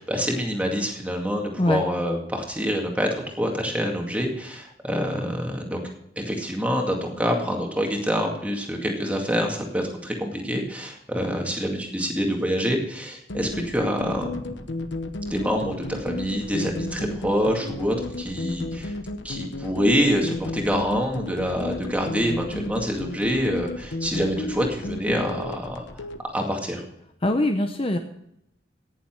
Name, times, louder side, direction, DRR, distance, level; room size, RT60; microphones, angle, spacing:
voice 1, 0.0-5.8 6.2-14.8 15.3-18.9 19.2-25.8 26.3-26.8, equal, 10° right, 1 dB, 2.1 m, -26 dB
sound 1, 13.3-26.2, left 2 dB, 75° left, 1.0 m, -33 dB
voice 2, 27.2-28.0, left 1 dB, 30° left, 6 dB, 0.7 m, -22 dB
17.5 x 7.3 x 4.6 m, 0.81 s
head